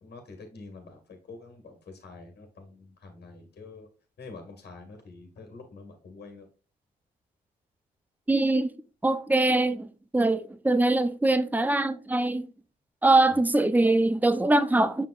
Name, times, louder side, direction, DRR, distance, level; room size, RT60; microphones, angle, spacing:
voice 1, 0.0-3.9 4.2-6.5 13.3-13.4, left 3 dB, 65° left, 1.8 m, -46 dB
voice 2, 8.3-8.7 9.0-12.5 13.0-15.1, right 2 dB, 10° right, 0.8 m, -23 dB
7.6 x 5.4 x 2.4 m
supercardioid pair, 50°, 18 cm